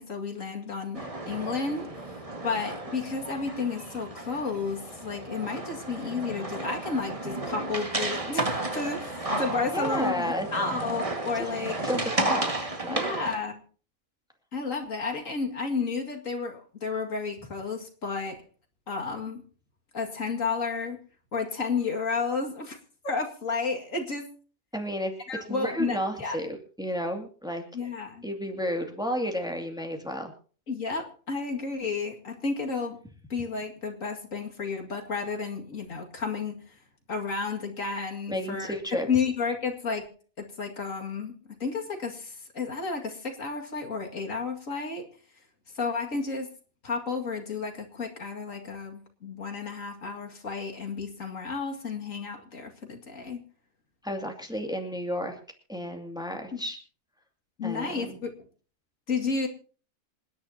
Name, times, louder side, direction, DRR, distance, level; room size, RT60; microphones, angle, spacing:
voice 1, 0.0-2.2 2.4-8.5 8.7-11.8 12.9-13.6 14.5-18.4 18.9-19.4 19.9-21.0 21.3-22.8 23.0-24.3 25.3-26.4 27.7-28.2 30.7-33.0 33.3-36.7 37.1-38.7 39.1-45.1 45.7-46.5 46.8-53.4 56.5-56.6 57.6-58.3 59.1-59.5, left 4 dB, 70° left, 3 dB, 2.6 m, -32 dB
sound 1, 0.9-13.3, right 2 dB, 25° right, 1.9 m, -33 dB
voice 2, 9.7-10.5 11.8-13.1 24.7-25.1 25.5-27.6 28.2-30.3 38.3-39.1 54.0-55.4 55.7-56.8 57.6-58.2, equal, 5° right, 3 dB, 2.4 m, -32 dB
27.5 x 10.5 x 2.8 m, 0.39 s
omnidirectional pair, 1.4 m